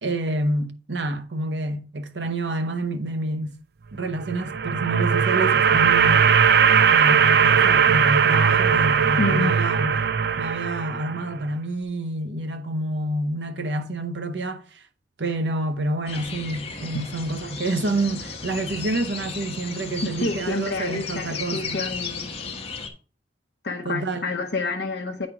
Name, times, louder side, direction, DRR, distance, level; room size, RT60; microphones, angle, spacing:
voice 1, 0.0-3.5 3.9-6.3 6.8-10.0 10.4-14.8 15.2-21.8 23.8-24.2, right 2 dB, 85° right, 0.9 m, -28 dB
sound 1, 4.2-11.3, right 7 dB, 60° right, 0.4 m, -19 dB
voice 2, 9.2-9.6 20.2-22.3 23.6-25.3, left 2 dB, 70° left, 0.8 m, -28 dB
sound 2, 16.1-22.9, left 4 dB, 35° left, 1.0 m, -35 dB
8.9 x 4.3 x 4.8 m
head